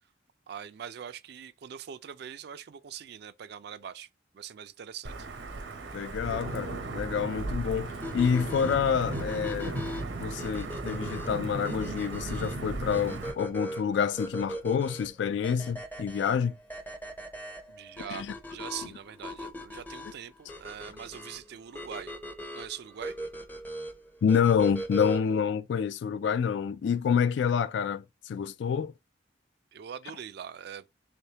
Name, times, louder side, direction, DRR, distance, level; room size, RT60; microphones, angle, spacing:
voice 1, 0.5-4.1 4.3-5.3 17.7-22.1 22.5-23.2 29.7-30.8, right 8 dB, 60° right, 0.4 m, -42 dB
Wind / Thunder / Rain, 5.0-13.3, right 2 dB, 80° right, 0.7 m, -36 dB
voice 2, 5.9-9.8 10.2-16.5 18.1-18.3 24.2-28.9, left 7 dB, 70° left, 0.3 m, -28 dB
sound 1, 8.0-25.4, equal, 10° left, 0.5 m, -40 dB
3.4 x 3.4 x 2.8 m
head